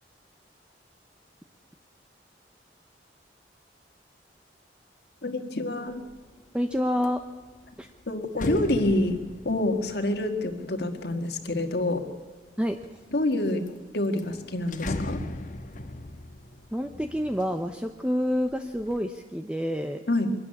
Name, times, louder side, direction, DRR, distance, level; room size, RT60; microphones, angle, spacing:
voice 1, 5.2-6.1 8.1-12.1 13.1-13.7 13.9-15.2 20.1-20.3, left 1 dB, 65° left, 5 dB, 1.8 m, -27 dB
sound 1, 5.9-6.3 6.7-12.0 12.6-13.3 13.7-13.8 14.0-18.0 18.4-19.0, left 1 dB, 50° left, 1.2 m, -38 dB
voice 2, 6.5-7.2 7.8-7.9 12.6-12.8 16.7-20.0, equal, 5° right, 6 dB, 0.7 m, -28 dB
23.5 x 13.0 x 9.9 m, 1.5 s
head